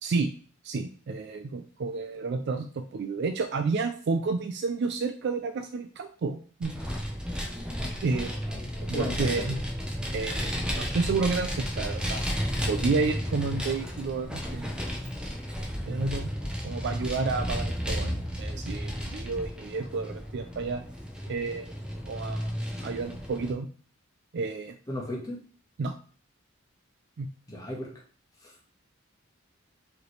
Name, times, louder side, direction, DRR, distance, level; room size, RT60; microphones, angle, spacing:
voice 1, 0.6-6.7 8.0-8.3 8.8-9.6 10.1-12.2 12.7-14.7 15.6-16.3 16.6-20.9 21.3-21.7 22.1-22.5 22.8-23.7 24.3-24.7 25.8-25.9 27.2-27.3, right 4 dB, 60° right, 0.4 m, -30 dB
Vehicle, 6.6-23.5, equal, 5° right, 0.7 m, -33 dB
voice 2, 8.5-9.6 24.9-25.4 27.5-27.9 28.4-28.5, left 1 dB, 20° left, 1.3 m, -36 dB
4.9 x 3.2 x 3.2 m
head